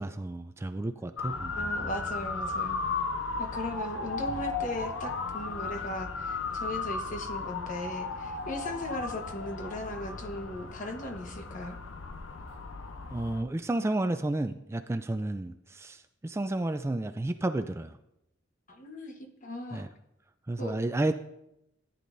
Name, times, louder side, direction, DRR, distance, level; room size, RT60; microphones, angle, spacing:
voice 1, 0.0-1.9 13.1-18.0 19.7-19.9 20.5-21.1, right 2 dB, 15° right, 8 dB, 0.3 m, -31 dB
Motor vehicle (road) / Siren, 1.2-13.4, left 4 dB, 85° left, 0.8 m, -35 dB
voice 2, 1.5-2.8 3.4-11.8 18.7-19.9 20.6-20.8, left 1 dB, 45° left, 4 dB, 1.2 m, -38 dB
14.5 x 10.0 x 2.7 m, 0.83 s
head